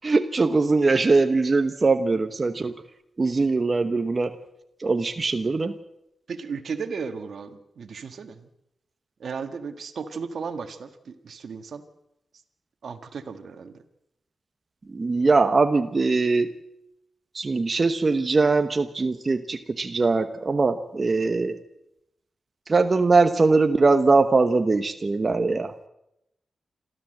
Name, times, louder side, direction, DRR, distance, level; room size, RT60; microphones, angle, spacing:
voice 1, 0.0-2.7 3.2-4.3 4.8-5.7 14.9-16.5 17.3-21.6 22.7-25.7, right 3 dB, 40° right, 8 dB, 1.1 m, -21 dB
voice 2, 6.3-8.5 9.2-11.8 12.8-13.8, right 5 dB, 75° right, 8 dB, 1.7 m, -35 dB
27.0 x 13.5 x 7.9 m, 0.86 s
cardioid pair, 75°, 0 cm